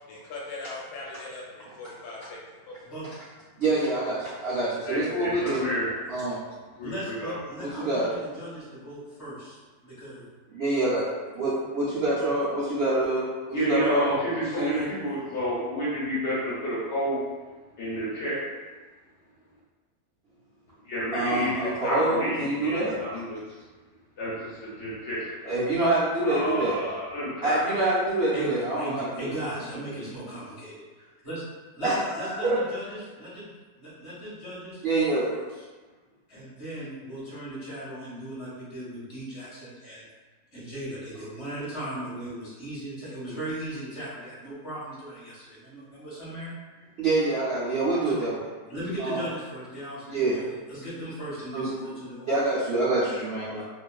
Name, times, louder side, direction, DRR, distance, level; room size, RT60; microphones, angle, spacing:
voice 1, 0.1-2.4 2.6-2.8 3.1-3.2, left 3 dB, 85° left, -4 dB, 1.2 m, -40 dB
voice 2, 3.6-5.7 6.1-6.4 7.6-8.1 10.5-11.1 11.3-13.3 13.7-14.1 14.6-14.9 21.1-23.0 25.4-26.8 27.4-29.3 31.8-32.6 34.8-35.2 47.0-48.4 49.0-49.2 50.1-50.4 51.5-51.7 52.3-53.5, right 2 dB, 80° right, -11 dB, 0.5 m, -26 dB
voice 3, 4.8-5.9 6.8-7.4 13.5-17.2 17.8-18.4 20.8-23.4 24.2-25.5 26.2-27.6, equal, 55° left, -8 dB, 0.8 m, -30 dB
voice 4, 6.8-9.6 9.8-10.3 28.3-31.4 31.7-33.5 33.8-35.5 36.3-40.1 40.5-46.5 48.0-48.2 48.7-52.3 53.5-53.6, right 1 dB, 25° left, -10 dB, 0.8 m, -37 dB
2.4 x 2.3 x 2.3 m, 1.3 s
omnidirectional pair, 1.7 m